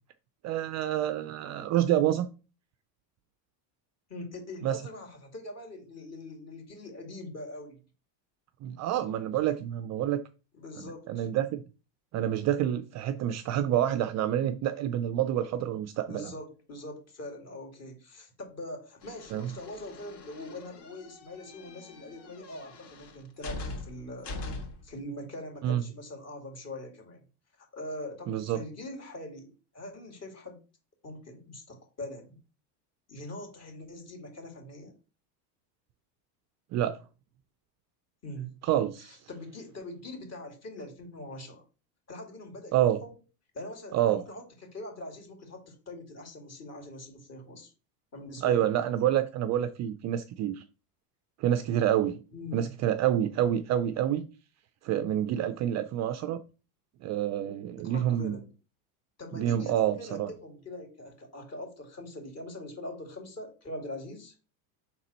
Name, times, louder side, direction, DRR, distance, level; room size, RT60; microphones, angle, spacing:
voice 1, 0.4-2.3 4.6-4.8 8.6-10.2 10.8-11.6 12.1-16.3 19.3-19.5 25.6-25.8 28.3-28.6 36.7-37.0 38.6-39.3 42.7-43.0 43.9-44.2 48.4-50.6 51.4-52.2 52.5-54.3 54.8-56.4 57.0-58.4 59.3-60.3, right 11 dB, 35° right, 0.4 m, -28 dB
voice 2, 4.1-7.8 10.5-11.3 16.1-24.3 24.8-27.2 27.6-30.6 31.0-32.4 33.1-35.0 38.2-38.5 39.0-41.6 42.1-43.1 43.5-47.7 48.1-48.7 52.3-52.7 57.8-58.5 59.2-64.3, left 1 dB, 30° left, 2.6 m, -43 dB
sound 1, 19.0-24.9, left 2 dB, 55° left, 2.5 m, -43 dB
5.9 x 3.9 x 4.3 m
supercardioid pair, 110°, 49 cm